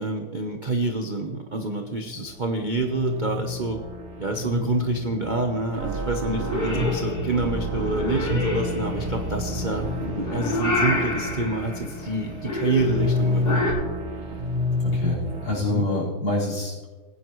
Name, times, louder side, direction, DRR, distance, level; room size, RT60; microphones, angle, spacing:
voice 1, 0.0-3.8 4.2-13.7 15.6-15.9, right 3 dB, 90° right, 3 dB, 0.4 m, -27 dB
sound 1, 1.8-15.6, left 1 dB, 70° right, 2.8 m, -29 dB
Purr / Meow, 6.3-13.7, left 2 dB, 45° left, 3.9 m, -29 dB
voice 2, 14.8-16.9, left 2 dB, 70° left, -5 dB, 5.7 m, -27 dB
20.0 x 10.0 x 3.1 m, 1.3 s
omnidirectional pair, 2.4 m